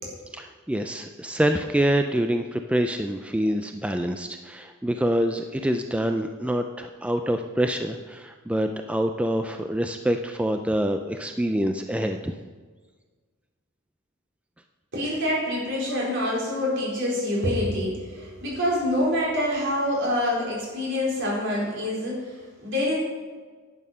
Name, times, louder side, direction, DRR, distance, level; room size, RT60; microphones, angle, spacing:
voice 1, 0.3-12.3, right 1 dB, 5° right, 6 dB, 0.4 m, -26 dB
voice 2, 14.9-23.0, left 1 dB, 60° right, -4 dB, 4.3 m, -26 dB
11.0 x 8.6 x 5.6 m, 1.5 s
head